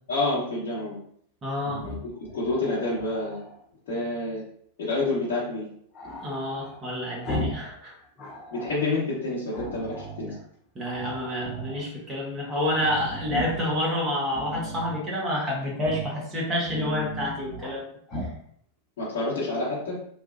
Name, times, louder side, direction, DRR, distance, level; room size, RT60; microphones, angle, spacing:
voice 1, 0.1-1.0 1.8-3.4 3.9-4.4 4.8-5.7 8.5-10.3 19.0-20.0, left 2 dB, 50° left, -10 dB, 1.1 m, -28 dB
voice 2, 1.4-1.9 6.2-7.9 10.7-17.9, left 1 dB, 25° right, -4 dB, 1.2 m, -28 dB
Growling, 1.6-3.6 5.9-7.7 8.0-8.9 9.5-10.4 10.8-11.8 12.2-12.3 12.5-13.8 14.3-15.0 15.8-16.2 16.5-17.8 18.1-18.4, equal, 30° left, 0.9 m, -37 dB
3.2 x 2.4 x 2.5 m, 0.64 s
figure-of-eight pair, 90°, 0 cm